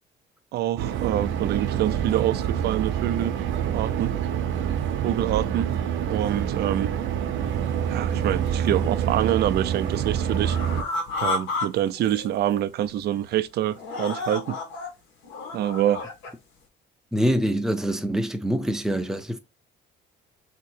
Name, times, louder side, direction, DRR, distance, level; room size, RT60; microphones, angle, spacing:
voice 1, 0.5-3.4 3.7-4.1 5.0-5.7 6.1-6.9 7.9-10.6 11.2-14.6 15.5-16.0, right 12 dB, 60° right, 0.4 m, -26 dB
sound 1, 0.8-10.8, right 9 dB, 80° right, 0.7 m, -26 dB
sound 2, 7.4-7.5 8.0-9.1 9.4-11.7 11.9-12.6 13.0-13.2 13.7-14.9 15.2-16.3, left 3 dB, 80° left, 1.5 m, -32 dB
voice 2, 17.1-19.4, equal, 5° right, 0.5 m, -25 dB
3.6 x 2.9 x 4.5 m
cardioid pair, 145°, 19 cm